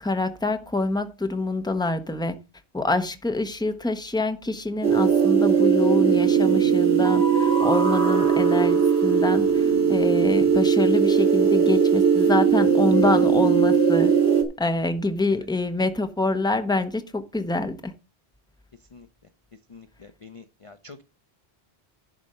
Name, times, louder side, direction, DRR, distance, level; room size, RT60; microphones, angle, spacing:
voice 1, 0.0-2.4 2.7-14.1 14.6-17.9, left 2 dB, 5° left, 0.8 m, -26 dB
sound 1, 4.8-14.4, right 7 dB, 75° right, 2.2 m, -19 dB
voice 2, 20.2-21.0, left 4 dB, 35° left, 0.7 m, -45 dB
11.0 x 4.4 x 6.6 m
omnidirectional pair, 1.1 m